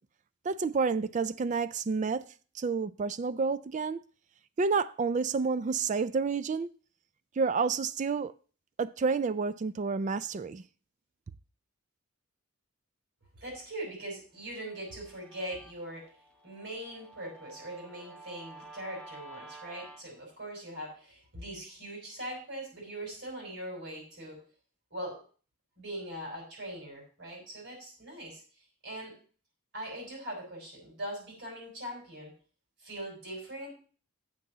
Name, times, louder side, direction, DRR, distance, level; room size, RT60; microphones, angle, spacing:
voice 1, 0.4-2.2 2.5-4.0 4.6-6.7 7.4-8.3 8.8-10.6, right 4 dB, 35° right, 0.3 m, -29 dB
voice 2, 13.3-16.1 16.4-24.5 24.9-25.2 25.8-28.4 28.8-29.2 29.7-32.3 32.8-33.7, right 1 dB, 55° right, 6.3 m, -41 dB
Guitar, 14.5-20.0, right 2 dB, 5° left, 1.3 m, -51 dB
7.4 x 6.7 x 6.6 m
head